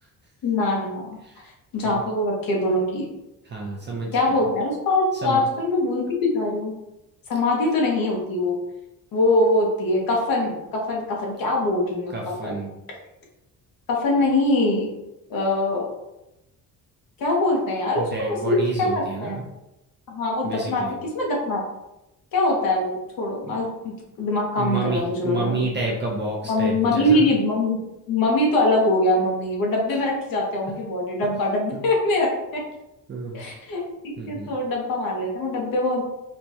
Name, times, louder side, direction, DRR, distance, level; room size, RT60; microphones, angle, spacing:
voice 1, 0.4-1.2 1.7-3.1 4.1-6.7 7.3-8.6 9.1-12.1 12.4-12.5 13.9-14.9 15.3-15.9 17.2-19.4 20.1-20.8 21.1-21.6 22.3-25.6 26.5-27.8 28.1-32.6 33.3-36.0, left 2 dB, 65° left, -1 dB, 0.9 m, -23 dB
voice 2, 3.4-4.4 5.2-5.4 12.1-12.7 18.0-19.4 20.4-20.9 23.4-23.6 24.6-27.2 31.7-31.8 33.1-33.4 34.2-34.5, right 3 dB, 30° right, -3 dB, 0.4 m, -30 dB
4.4 x 2.2 x 2.6 m, 0.92 s
cardioid pair, 165°, 37 cm